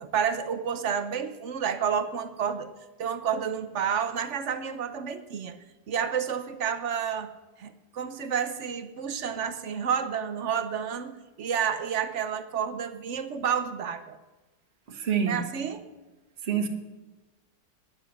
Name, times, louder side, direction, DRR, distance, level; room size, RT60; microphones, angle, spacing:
voice 1, 0.0-2.7 3.0-5.6 5.9-7.3 7.6-14.2 15.3-15.9, right 7 dB, 55° right, 10 dB, 0.8 m, -30 dB
voice 2, 15.0-15.4 16.5-16.7, right 7 dB, 35° right, 4 dB, 1.5 m, -25 dB
10.0 x 9.4 x 7.0 m, 1.1 s
omnidirectional pair, 2.0 m